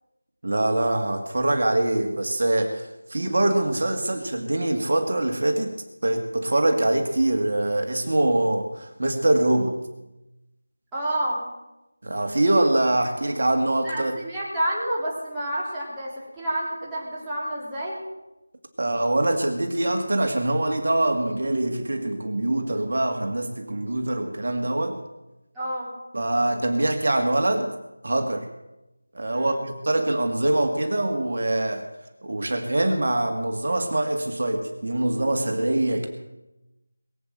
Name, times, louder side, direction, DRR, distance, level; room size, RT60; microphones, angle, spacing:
voice 1, 0.4-5.8 6.0-9.8 12.0-14.2 18.8-25.0 26.1-27.7 28.0-28.5 29.1-31.8 32.2-36.1, right 1 dB, 55° right, 4 dB, 2.1 m, -24 dB
voice 2, 10.9-11.4 13.8-18.0 25.5-25.9 29.3-29.6, right 1 dB, 5° right, -9 dB, 3.8 m, -29 dB
22.0 x 8.3 x 7.8 m, 0.97 s
figure-of-eight pair, 170°, 0 cm